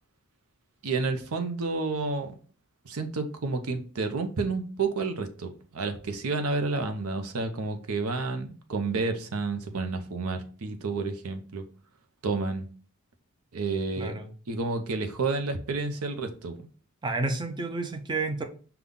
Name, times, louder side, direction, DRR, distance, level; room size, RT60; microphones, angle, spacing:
voice 1, 0.8-2.3 2.8-11.6 12.2-12.7 13.5-14.2 14.5-16.6, right 3 dB, 70° right, 7 dB, 0.7 m, -30 dB
voice 2, 14.0-14.3 17.0-18.4, right 3 dB, 20° right, 5 dB, 0.5 m, -30 dB
5.4 x 2.3 x 3.6 m, 0.40 s
head